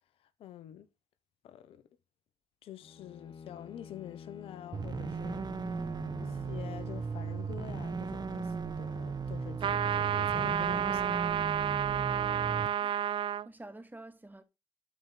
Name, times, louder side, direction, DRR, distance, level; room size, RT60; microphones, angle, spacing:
voice 1, 0.2-0.9 1.4-1.9 2.6-5.7 6.2-11.5, left 11 dB, 85° left, 1.1 m, -47 dB
Bowed string instrument, 2.8-7.7, left 6 dB, 60° left, 1.8 m, -50 dB
sound 1, 4.7-12.7, right 5 dB, 50° right, 1.4 m, -36 dB
voice 2, 5.7-6.4 12.0-12.4 12.8-14.4, right 2 dB, 20° right, 2.6 m, -51 dB
sound 2, 9.6-13.5, right 9 dB, 65° right, 0.5 m, -30 dB
12.5 x 4.9 x 4.0 m
supercardioid pair, 45°, 9 cm